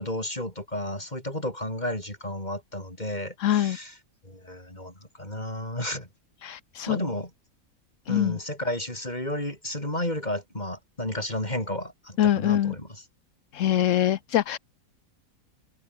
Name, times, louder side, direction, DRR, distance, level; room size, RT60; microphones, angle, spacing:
voice 1, 0.0-3.9 4.2-6.1 6.9-7.3 8.1-13.0, left 1 dB, 30° left, 7.8 m, -32 dB
voice 2, 3.4-3.8 6.4-7.0 8.1-8.4 12.2-12.7 13.5-14.6, left 11 dB, 65° left, 1.0 m, -24 dB
omnidirectional pair, 1.5 m